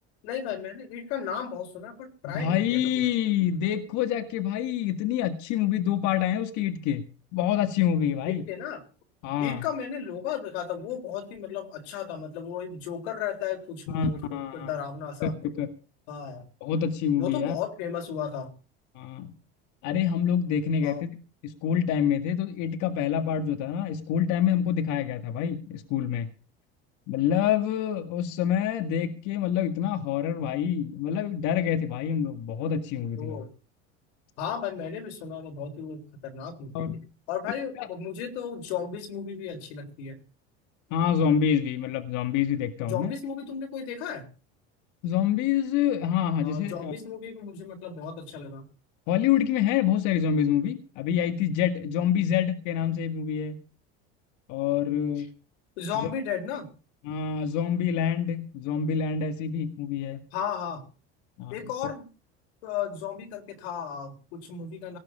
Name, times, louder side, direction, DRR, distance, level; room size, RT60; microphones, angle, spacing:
voice 1, 0.2-2.9 8.3-8.8 9.4-15.3 16.1-16.4 17.2-18.5 20.8-21.0 33.2-33.5 34.4-36.9 37.3-40.2 42.8-44.3 46.4-48.7 55.2-55.3 55.8-56.7 60.3-60.8 61.5-62.0 62.6-65.0, left 7 dB, 80° left, 3.7 m, -34 dB
voice 2, 2.2-8.5 9.2-9.6 13.9-14.7 15.2-15.7 16.6-17.6 19.0-19.3 19.8-21.1 21.4-26.3 27.1-33.4 36.7-37.0 37.8-37.9 40.9-43.1 45.0-46.9 49.1-53.6 54.5-55.3 56.0-56.1 57.0-60.2 61.4-61.6, left 9 dB, 65° left, 1.9 m, -26 dB
18.5 x 6.2 x 8.6 m
supercardioid pair, 90°, 32 cm